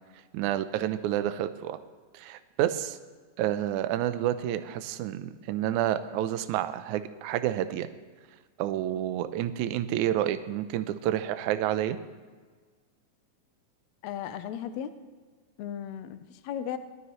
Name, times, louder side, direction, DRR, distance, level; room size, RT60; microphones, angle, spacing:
voice 1, 0.3-1.8 2.1-3.0 3.4-7.9 8.6-12.0, right 12 dB, 80° right, 11 dB, 1.9 m, -29 dB
voice 2, 14.0-14.9 15.6-16.8, left 9 dB, 75° left, 10 dB, 1.7 m, -36 dB
19.5 x 12.5 x 3.1 m, 1.5 s
omnidirectional pair, 3.8 m